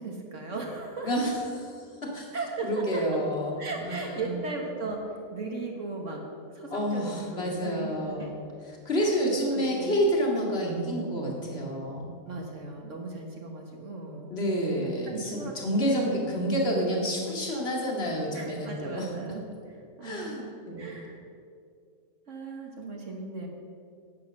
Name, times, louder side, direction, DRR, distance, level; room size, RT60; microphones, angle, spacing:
voice 1, 0.0-1.1 2.3-3.2 3.6-6.2 6.5-8.3 9.0-9.2 9.5-9.9 12.2-14.3 14.9-16.2 18.3-20.4 20.8-21.2 22.3-23.5, right 3 dB, 55° right, 1 dB, 1.6 m, -37 dB
voice 2, 1.0-2.3 2.6-4.3 6.7-8.3 8.8-12.1 14.3-19.1 20.0-20.8, equal, 45° left, -2 dB, 2.5 m, -29 dB
11.0 x 9.4 x 6.3 m, 2.3 s
omnidirectional pair, 1.5 m